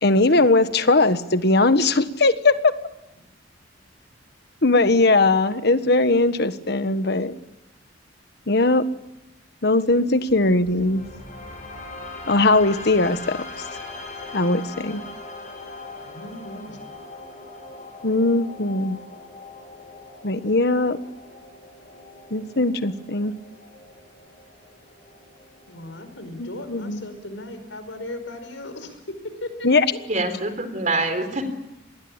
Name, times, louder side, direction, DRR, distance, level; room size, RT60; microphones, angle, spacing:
voice 1, 0.0-2.7 4.6-7.3 8.5-8.8 9.6-11.0 12.3-13.4 14.3-15.0 18.0-19.0 20.2-21.0 22.3-23.3 26.4-27.1 29.6-29.8, left 2 dB, 60° left, 11 dB, 1.4 m, -19 dB
sound 1, 10.3-26.3, left 3 dB, 45° left, 7.0 m, -40 dB
voice 2, 16.0-16.8 25.7-29.0 29.4-30.0, left 1 dB, 85° left, 9 dB, 5.2 m, -37 dB
voice 3, 30.1-31.4, right 2 dB, 40° right, 9 dB, 3.9 m, -25 dB
26.5 x 20.5 x 8.8 m, 0.91 s
head